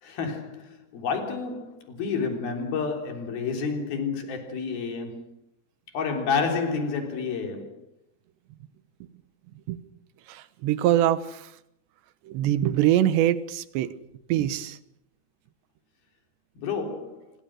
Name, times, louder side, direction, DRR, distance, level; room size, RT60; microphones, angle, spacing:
voice 1, 0.0-5.2 5.9-7.9 16.6-17.3, left 5 dB, 60° left, 5.2 m, -30 dB
voice 2, 10.3-11.5 12.3-13.9 14.3-14.8, right 12 dB, 85° right, 3.3 m, -23 dB
26.5 x 23.5 x 6.4 m
omnidirectional pair, 4.9 m